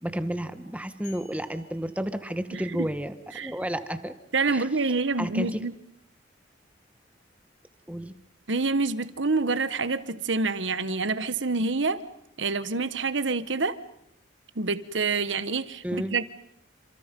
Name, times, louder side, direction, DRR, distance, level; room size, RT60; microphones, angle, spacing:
voice 1, 0.0-4.1 4.5-4.7 5.2-5.6 7.9-8.2 15.8-16.1, equal, 5° right, 1.1 m, -31 dB
sound 1, 1.0-2.9, left 7 dB, 40° left, 5.6 m, -55 dB
voice 2, 2.5-2.9 3.4-3.5 4.3-5.8 8.5-12.0 12.4-13.8 14.5-16.2, right 3 dB, 75° right, 1.3 m, -27 dB
30.0 x 27.0 x 5.4 m
head